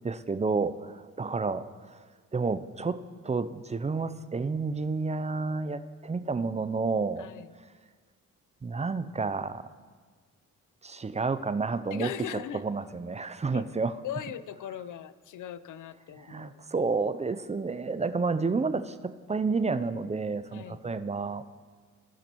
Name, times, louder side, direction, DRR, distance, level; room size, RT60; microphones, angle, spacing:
voice 1, 0.0-2.0 2.3-3.0 3.2-7.3 8.6-9.6 10.8-13.9 16.2-21.4, right 4 dB, 20° right, 11 dB, 0.4 m, -30 dB
voice 2, 7.2-7.5 11.9-12.6 13.5-13.7 14.0-16.5 20.5-20.8, left 10 dB, 60° left, 14 dB, 0.5 m, -39 dB
16.5 x 6.0 x 3.0 m, 1.5 s
supercardioid pair, 50°, 36 cm